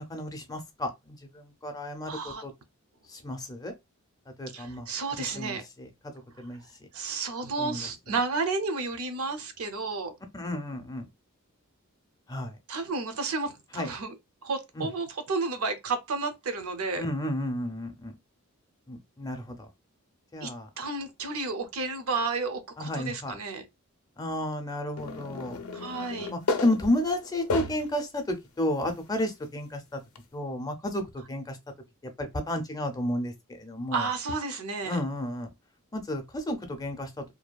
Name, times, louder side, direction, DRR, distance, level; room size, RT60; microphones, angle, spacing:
voice 1, 0.0-2.5 3.1-3.7 4.4-4.9 5.2-5.9 6.4-6.6 7.6-7.9 10.3-11.1 12.3-12.5 13.7-13.9 14.8-14.9 17.0-18.1 18.9-19.6 20.3-20.7 22.8-23.3 24.2-25.6 26.3-30.0 30.3-31.6 32.2-33.3 33.6-34.1 34.9-35.5 35.9-37.2, left 1 dB, 15° left, 0.5 m, -32 dB
voice 2, 2.1-2.4 4.5-5.6 6.9-10.1 12.7-14.2 14.4-17.1 20.4-20.5 20.8-23.7 25.7-26.3 33.9-35.0, right 4 dB, 70° right, 0.6 m, -32 dB
sound 1, 25.0-28.0 28.6-28.7 30.2-30.3, left 3 dB, 70° left, 0.5 m, -33 dB
2.7 x 2.2 x 2.2 m
head